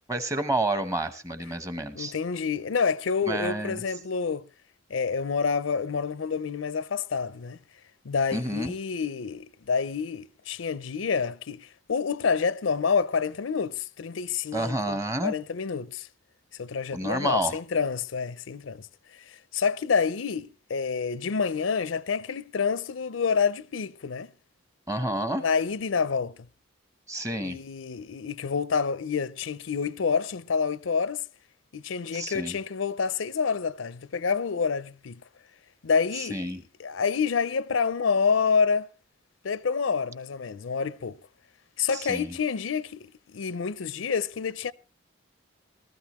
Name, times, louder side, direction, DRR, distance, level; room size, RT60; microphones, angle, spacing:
voice 1, 0.1-2.1 3.2-3.8 8.3-8.7 14.5-15.3 16.9-17.6 24.9-25.4 27.1-27.6 32.1-32.6 36.2-36.6 41.9-42.4, right 1 dB, 15° right, 0.9 m, -29 dB
voice 2, 1.9-4.5 4.9-7.6 8.0-16.1 16.6-18.9 19.3-24.3 25.4-26.3 27.3-31.2 31.7-35.2 35.8-38.9 39.4-41.2 41.8-44.7, left 5 dB, 80° left, 0.5 m, -28 dB
18.5 x 13.0 x 3.1 m
head